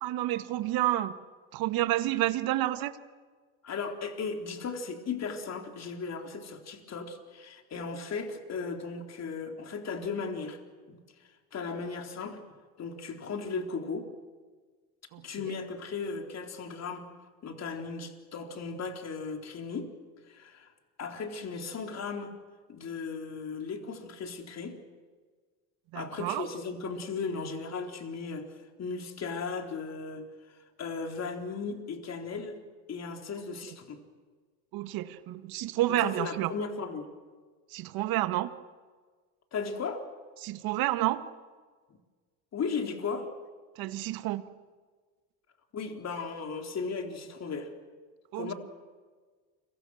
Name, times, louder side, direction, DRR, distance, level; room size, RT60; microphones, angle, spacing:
voice 1, 0.0-1.1 1.5-2.9 15.1-15.2 25.9-26.4 33.7-33.8 34.7-36.5 37.7-38.5 40.4-41.2 43.8-44.4 48.3-48.5, right 15 dB, 65° right, 10 dB, 1.8 m, -29 dB
voice 2, 3.6-10.6 10.9-11.0 11.5-12.4 12.8-14.1 15.2-17.1 17.4-19.9 20.3-20.7 21.0-22.3 22.7-24.8 25.9-30.3 30.8-32.6 32.9-34.0 35.9-37.1 39.5-40.1 42.5-43.3 45.7-47.7 48.3-48.5, left 4 dB, 40° left, 3 dB, 4.0 m, -36 dB
30.0 x 24.5 x 6.4 m, 1.5 s
supercardioid pair, 85°, 38 cm